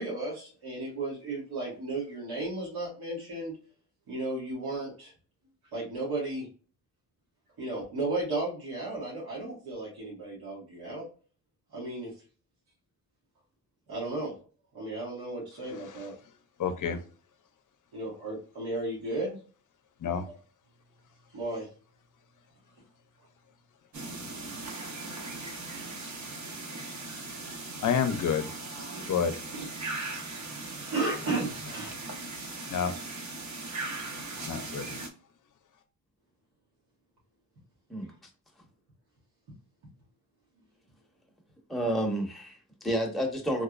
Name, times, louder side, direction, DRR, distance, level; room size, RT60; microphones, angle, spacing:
voice 1, 0.0-3.6 4.1-5.1 5.7-6.5 7.6-11.1 11.7-12.1 13.9-14.3 14.7-16.2 17.9-19.4 21.3-21.7 24.6-24.8 28.9-29.0 29.5-29.7 30.5-31.9, right 2 dB, 85° right, 1.8 m, -34 dB
voice 2, 16.6-17.0 20.0-20.2 27.8-28.5 29.1-29.3 32.7-32.9 34.5-35.0, left 7 dB, 55° left, 0.6 m, -28 dB
sound 1, 23.9-35.1, right 3 dB, 50° right, 0.9 m, -39 dB
voice 3, 41.7-43.6, right 1 dB, ahead, 0.8 m, -30 dB
3.6 x 2.9 x 2.4 m
wide cardioid pair, 150°, 37 cm